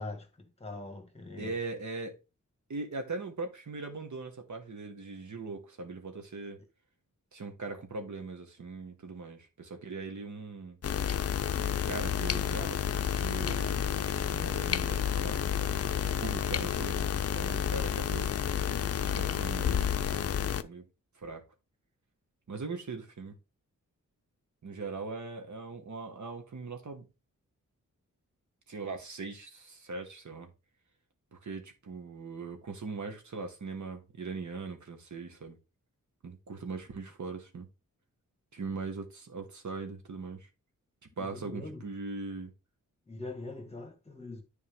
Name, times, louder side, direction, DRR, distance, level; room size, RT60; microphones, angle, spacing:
voice 1, 0.0-1.5 41.2-41.8 43.1-44.4, left 2 dB, 20° left, 2.0 m, -42 dB
voice 2, 1.4-2.2 2.7-6.6 7.3-10.8 11.8-15.8 16.2-18.3 19.0-20.3 20.6-20.8 21.2-21.4 22.5-23.4 24.6-27.1 28.7-30.5 31.3-35.6 36.2-37.7 38.5-40.5 41.0-42.5, right 4 dB, 60° right, 1.9 m, -40 dB
sound 1, 10.8-20.6, left 8 dB, 50° left, 0.6 m, -30 dB
10.0 x 4.5 x 3.7 m
wide cardioid pair, 90°, 32 cm